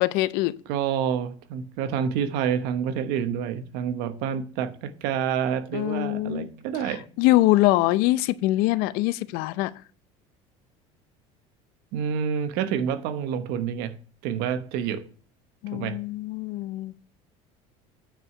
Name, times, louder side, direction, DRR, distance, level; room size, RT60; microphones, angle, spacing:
voice 1, 0.0-0.6 5.7-6.5 7.2-9.7 15.6-17.0, left 17 dB, 70° left, 0.6 m, -23 dB
voice 2, 0.7-7.1 11.9-14.0 14.2-15.1 15.7-16.0, right 8 dB, 75° right, 1.1 m, -28 dB
9.1 x 4.9 x 5.5 m
supercardioid pair, 115°, 16 cm